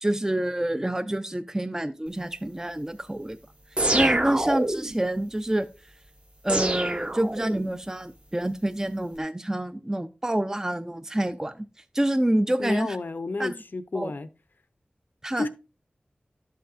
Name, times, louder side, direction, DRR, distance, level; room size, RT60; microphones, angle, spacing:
voice 1, 0.0-3.4 3.9-5.7 6.4-11.7 11.9-13.0 13.4-13.6 13.9-14.1 15.2-15.5, right 1 dB, 15° right, 0.5 m, -27 dB
sound 1, 3.8-5.0 6.5-7.8, right 1 dB, 35° right, 0.9 m, -26 dB
voice 2, 12.6-14.3 15.4-15.5, left 3 dB, 70° left, 0.7 m, -31 dB
11.5 x 5.6 x 2.5 m
wide cardioid pair, 50°, 3 cm